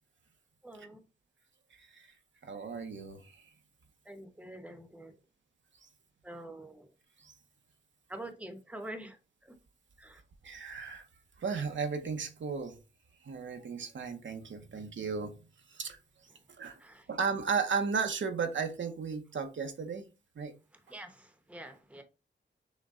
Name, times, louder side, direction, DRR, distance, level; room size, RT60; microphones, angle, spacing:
voice 1, 0.6-1.0 4.0-5.2 6.2-6.9 8.1-9.6 10.0-10.2 16.3-16.4 16.8-17.1 20.7-22.0, right 1 dB, 5° right, 0.8 m, -46 dB
voice 2, 1.8-2.1 2.4-3.4 7.2-7.3 10.4-11.1 11.4-12.8 13.2-15.3 15.7-16.0 16.6-16.8 17.1-20.0 20.4-20.5, right 5 dB, 75° right, 0.8 m, -35 dB
6.4 x 2.2 x 3.6 m
wide cardioid pair, 85°, 19 cm